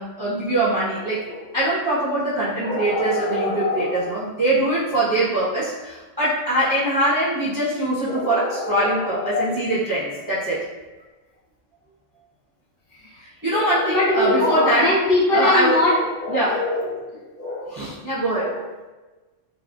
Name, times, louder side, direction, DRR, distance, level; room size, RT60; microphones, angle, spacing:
voice 1, 0.0-1.2 1.5-10.6 13.2-14.9 15.3-15.8 16.3-16.6 17.7-18.5, right 1 dB, 25° right, -10 dB, 0.5 m, -23 dB
voice 2, 2.6-4.1 8.1-9.6 13.0-13.2 13.5-17.8 18.3-18.6, left 2 dB, 55° left, -7 dB, 0.8 m, -23 dB
2.5 x 2.1 x 2.4 m, 1.2 s
omnidirectional pair, 1.3 m